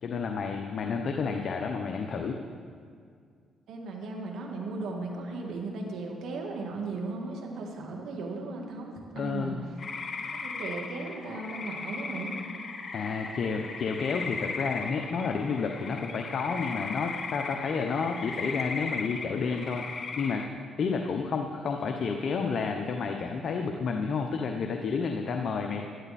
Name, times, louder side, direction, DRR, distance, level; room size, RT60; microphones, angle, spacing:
voice 1, 0.0-2.4 9.1-9.6 12.9-19.8 20.2-20.4 20.8-25.8, left 5 dB, 55° left, 3 dB, 1.0 m, -30 dB
voice 2, 3.7-9.6 9.9-12.3, right 3 dB, 75° right, 0 dB, 2.2 m, -37 dB
sound 1, 9.8-20.5, left 4 dB, 40° left, 1.3 m, -37 dB
17.5 x 12.0 x 4.3 m, 2.1 s
cardioid pair, 90°, 0 cm